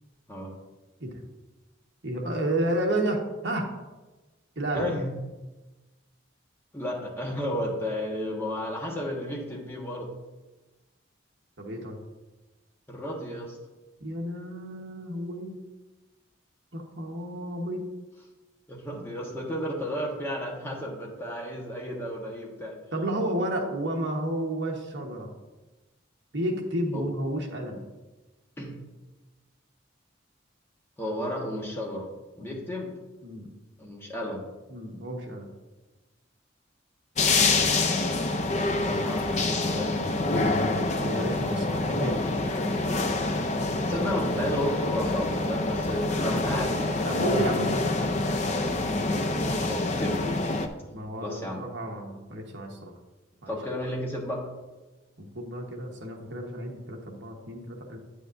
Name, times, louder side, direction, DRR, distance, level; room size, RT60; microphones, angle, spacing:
voice 1, 2.0-3.7 4.6-4.9 11.6-12.0 14.0-15.6 16.7-17.9 22.9-25.3 26.3-27.8 32.4-32.6 33.2-33.5 34.7-35.5 41.0-42.2 47.0-48.8 49.1-49.7 50.9-52.9 53.4-53.6 55.2-58.0, right 1 dB, 65° right, 1 dB, 1.2 m, -31 dB
voice 2, 4.7-5.1 6.7-10.1 12.9-13.6 18.7-22.8 26.9-27.0 28.6-28.8 31.0-32.1 32.4-32.9 33.8-34.4 38.4-40.1 43.8-47.4 49.7-50.2 51.2-51.6 53.5-54.4, left 1 dB, 10° left, -2 dB, 1.2 m, -33 dB
sound 1, 37.2-50.7, left 2 dB, 35° left, 0.5 m, -26 dB
9.1 x 8.2 x 2.6 m, 1.2 s
head